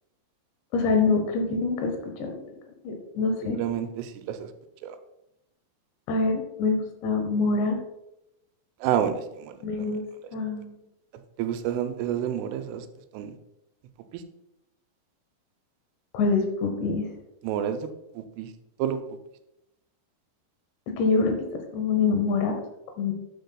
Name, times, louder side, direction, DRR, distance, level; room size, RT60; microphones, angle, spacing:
voice 1, 0.7-2.4 2.8-3.6 6.1-7.8 9.6-10.0 10.3-10.8 16.1-17.1 20.9-22.5 23.0-23.1, left 4 dB, 75° left, 4 dB, 2.9 m, -25 dB
voice 2, 3.4-4.5 4.8-5.0 8.8-9.5 11.4-12.8 13.1-13.3 14.1-14.2 17.4-17.9 18.2-18.5 18.8-19.0, right 9 dB, 90° right, 8 dB, 3.1 m, -29 dB
9.9 x 7.9 x 2.3 m, 0.87 s
omnidirectional pair, 5.6 m